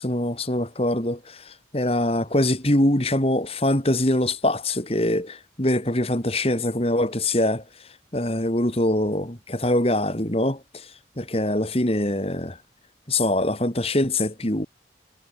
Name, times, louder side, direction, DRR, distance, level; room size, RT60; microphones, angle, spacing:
voice 1, 0.0-7.6 8.1-10.9 11.2-12.6 13.1-14.7, left 1 dB, 35° left, 3.4 m, -23 dB
head